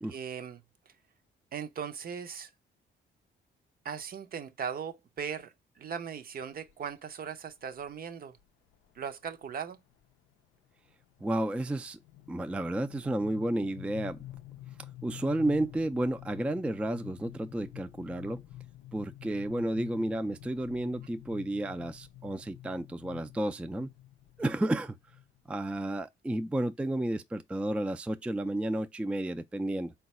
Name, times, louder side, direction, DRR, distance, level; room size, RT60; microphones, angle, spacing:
voice 1, 0.1-0.9 1.5-2.5 3.8-8.4 8.9-9.8, right 7 dB, 50° right, 0.6 m, -39 dB
sound 1, 6.7-6.9 7.8-7.9 8.3-8.4 8.7-9.0 9.4-25.8, left 14 dB, 85° left, 0.4 m, -49 dB
voice 2, 11.2-12.0 12.3-14.2 15.0-18.4 18.9-23.9 24.4-25.0 25.5-29.9, right 1 dB, 5° right, 0.3 m, -32 dB
3.9 x 2.2 x 4.0 m
cardioid pair, 90°, 20 cm